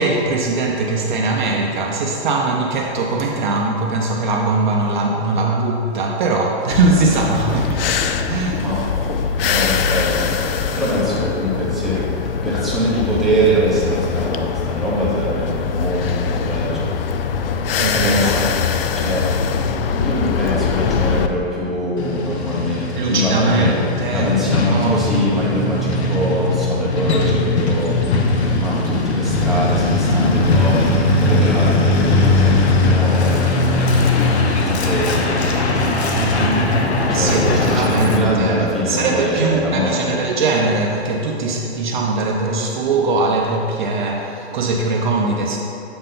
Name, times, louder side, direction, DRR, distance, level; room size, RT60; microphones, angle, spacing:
voice 1, 0.0-8.6 11.9-12.0 17.8-18.4 23.0-24.4 24.7-25.4 36.1-45.6, right 3 dB, 45° right, 0 dB, 0.6 m, -21 dB
cigarrette breathing exhalating smoke, 6.7-21.3, left 6 dB, 55° left, 0.4 m, -22 dB
voice 2, 8.6-9.0 9.4-12.1 12.4-16.9 17.9-18.5 18.9-19.5 19.9-23.7 24.1-34.0 34.5-35.3 37.1-40.2, equal, ahead, -8 dB, 0.8 m, -23 dB
Truck, 22.0-38.2, left 2 dB, 75° left, 0.9 m, -18 dB
7.7 x 3.8 x 3.9 m, 2.8 s
hypercardioid pair, 145°, 33 cm